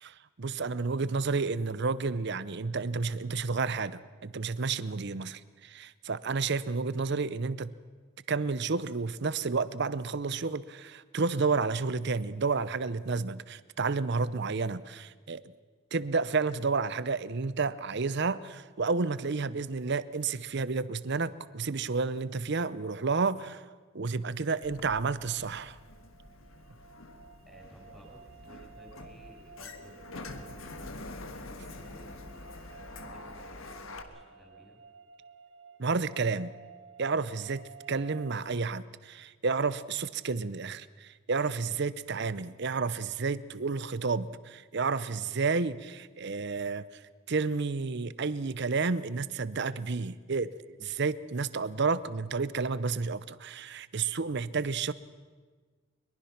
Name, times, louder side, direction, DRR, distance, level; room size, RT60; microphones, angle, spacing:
voice 1, 0.0-7.7 8.3-15.4 15.9-23.6 23.9-25.8 35.8-36.5 37.0-47.0 47.3-50.5 50.8-54.9, right 4 dB, 55° right, 16 dB, 0.7 m, -31 dB
Sliding door, 24.6-34.0, left 2 dB, 80° left, 1.5 m, -46 dB
sound 1, 25.2-38.4, right 6 dB, 70° right, 1.5 m, -54 dB
voice 2, 27.4-31.0 31.6-34.8, equal, ahead, -1 dB, 6.3 m, -56 dB
23.0 x 22.0 x 5.9 m, 1.4 s
head